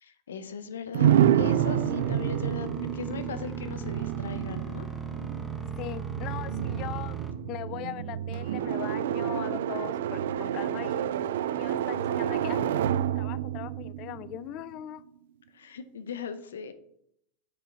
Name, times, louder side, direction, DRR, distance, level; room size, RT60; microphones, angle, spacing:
voice 1, 0.0-4.9 15.5-16.7, left 6 dB, 85° left, 11 dB, 0.8 m, -39 dB
sound 1, 0.9-14.8, right 10 dB, 75° right, 0.3 m, -29 dB
sound 2, 1.4-7.3, right 5 dB, 10° right, 1.1 m, -37 dB
voice 2, 5.8-7.2 7.5-11.1 11.6-12.8 13.1-15.0, left 14 dB, 45° left, 17 dB, 0.3 m, -40 dB
5.6 x 4.9 x 6.3 m, 0.73 s
hypercardioid pair, 105°, 0 cm